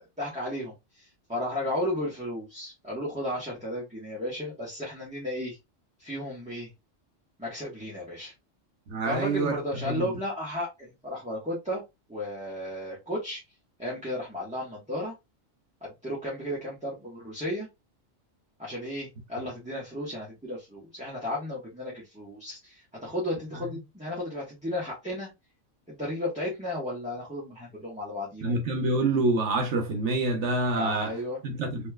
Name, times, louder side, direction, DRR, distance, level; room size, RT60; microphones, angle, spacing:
voice 1, 0.0-5.6 6.0-6.7 7.4-8.3 9.1-11.8 12.1-13.4 13.8-15.1 15.8-17.7 18.6-25.3 25.9-28.6 30.7-31.4, left 1 dB, 5° right, 1.3 m, -34 dB
voice 2, 8.9-10.2 23.6-23.8 28.4-31.1 31.4-31.9, right 2 dB, 70° right, 1.1 m, -27 dB
4.2 x 3.1 x 2.3 m
omnidirectional pair, 1.3 m